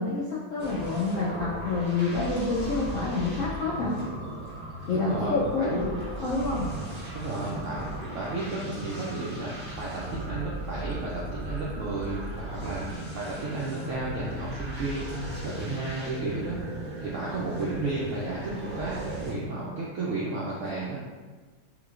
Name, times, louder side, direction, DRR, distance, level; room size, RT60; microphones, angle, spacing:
voice 1, 0.0-4.0 4.9-6.7, left 3 dB, 75° left, -6 dB, 0.7 m, -28 dB
sound 1, 0.6-19.3, right 1 dB, 45° right, 0.3 m, -37 dB
voice 2, 4.9-5.8 7.1-16.6 17.0-21.0, right 2 dB, 75° right, -6 dB, 0.7 m, -33 dB
3.4 x 3.0 x 2.4 m, 1.4 s
omnidirectional pair, 1.8 m